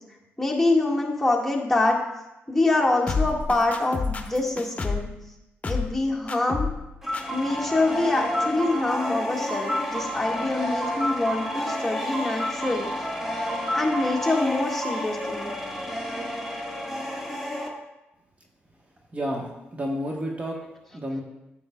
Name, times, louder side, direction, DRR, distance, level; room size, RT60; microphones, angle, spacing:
voice 1, 0.4-2.0 2.5-5.1 5.7-6.7 7.3-12.9 13.7-15.5, left 2 dB, 10° left, -2 dB, 1.7 m, -25 dB
sound 1, 3.1-5.1 5.6-6.0 6.3-6.8 7.1-7.2, left 4 dB, 30° left, 1.0 m, -29 dB
sound 2, 7.0-17.7, equal, 10° right, 1.7 m, -30 dB
voice 2, 19.1-21.2, equal, 30° right, 0 dB, 1.2 m, -31 dB
9.1 x 7.4 x 2.3 m, 0.94 s
supercardioid pair, 55°, 5 cm